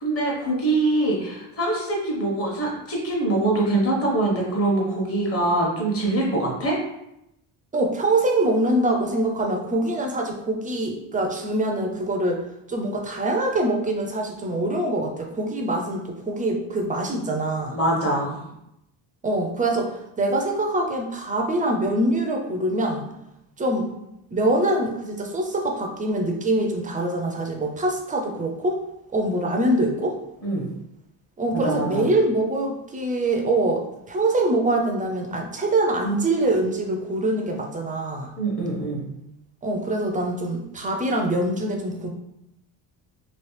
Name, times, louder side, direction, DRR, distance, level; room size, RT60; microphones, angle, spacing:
voice 1, 0.0-6.8 17.7-18.4 30.4-30.6 31.6-32.1 38.4-39.0, right 2 dB, 30° left, -3 dB, 1.1 m, -24 dB
voice 2, 7.7-12.4 12.7-17.8 19.2-23.1 23.6-23.9 24.3-28.8 29.1-30.2 31.4-38.3 39.6-42.1, right 1 dB, 20° right, 2 dB, 0.3 m, -24 dB
3.0 x 2.7 x 3.1 m, 0.84 s
cardioid pair, 130°, 43 cm